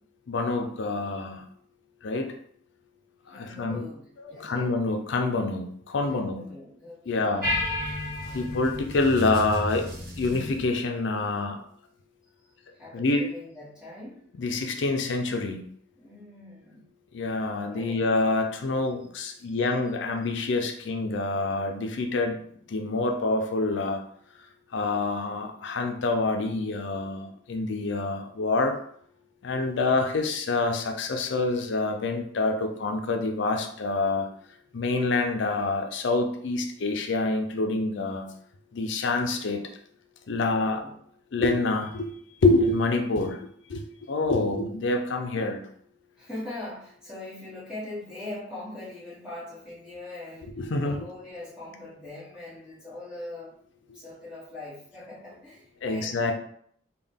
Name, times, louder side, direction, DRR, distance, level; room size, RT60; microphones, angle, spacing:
voice 1, 0.3-1.4 2.0-2.3 3.3-3.8 4.2-6.4 7.1-7.5 8.3-9.9 10.2-11.6 12.9-13.3 14.4-15.6 17.1-22.4 22.7-24.0 24.7-28.8 29.4-34.3 34.7-38.3 38.7-39.7 40.3-40.8 41.3-42.1 42.4-43.4 43.7-45.6 50.6-51.0 55.8-56.3, left 3 dB, 65° left, 4 dB, 0.5 m, -26 dB
voice 2, 3.3-4.8 6.1-7.6 12.4-12.5 12.7-14.2 15.9-16.8 17.4-18.0 19.2-19.5 40.5-40.9 44.3-44.6 45.3-45.6 46.2-50.5 50.8-53.6 53.9-56.3, left 2 dB, 5° right, -8 dB, 1.3 m, -42 dB
sound 1, 7.4-10.7, left 1 dB, 45° right, 1.0 m, -32 dB
3.7 x 2.3 x 3.5 m, 0.63 s
head